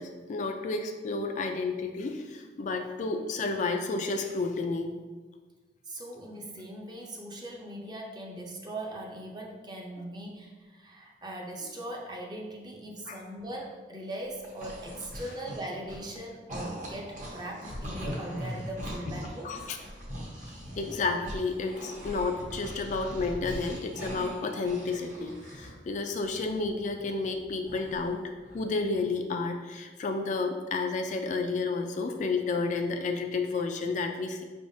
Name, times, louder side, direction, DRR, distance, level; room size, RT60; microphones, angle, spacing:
voice 1, 0.0-4.9 13.1-13.2 19.1-19.2 19.4-19.8 20.8-28.2 28.5-34.4, left 3 dB, 45° left, 4 dB, 0.4 m, -31 dB
voice 2, 5.8-19.5, right 1 dB, 25° right, 0 dB, 0.6 m, -40 dB
sound 1, 14.2-16.2 16.5-25.7 26.0-28.1 28.4-28.7, equal, 45° right, 0.9 m, -41 dB
5.4 x 3.4 x 2.7 m, 1.3 s
head